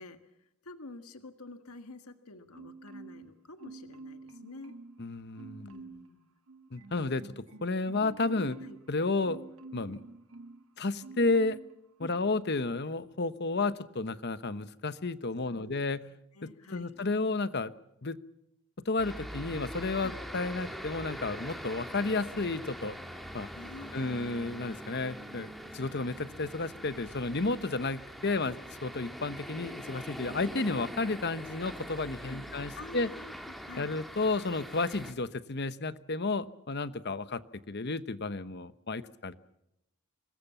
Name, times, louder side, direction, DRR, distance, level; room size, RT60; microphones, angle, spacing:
voice 1, 0.0-4.7 5.6-6.2 8.6-8.8 12.0-12.2 15.5-15.8 16.3-17.0 20.0-20.2 23.5-24.3 30.2-30.5 32.2-34.0, left 2 dB, 80° left, 8 dB, 1.7 m, -48 dB
Marimba xylophone, 2.5-3.3 3.6-5.0 5.4-6.1 6.5-10.6 11.0-11.7 12.1-12.3, right 3 dB, 75° right, 1.9 m, -48 dB
voice 2, 5.0-5.7 6.7-8.6 8.9-9.4 9.7-10.0 10.8-11.6 12.0-16.0 16.4-17.7 18.0-18.2 18.8-23.0 23.3-23.5 23.9-33.1 33.8-37.4 37.7-39.3, left 3 dB, 50° left, 13 dB, 1.0 m, -32 dB
sound 1, 19.0-35.1, equal, ahead, 2.1 m, -43 dB
25.5 x 20.5 x 7.2 m, 0.83 s
head